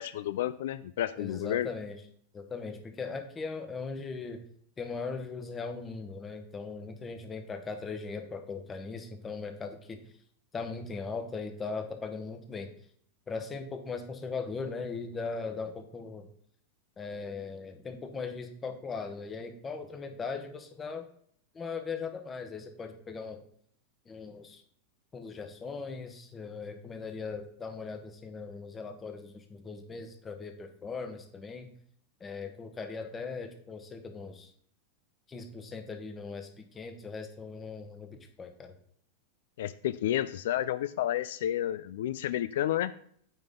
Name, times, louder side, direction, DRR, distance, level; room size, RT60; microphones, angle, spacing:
voice 1, 0.0-1.7 39.6-42.9, left 12 dB, 75° left, 14 dB, 0.3 m, -31 dB
voice 2, 1.1-2.0 2.3-4.4 4.8-10.0 10.5-12.7 13.3-16.3 17.0-21.1 21.5-23.4 24.1-24.6 25.1-31.7 32.2-34.5 35.3-38.7, left 4 dB, 20° left, 6 dB, 1.1 m, -39 dB
8.9 x 3.9 x 3.7 m, 0.64 s
hypercardioid pair, 120°, 0 cm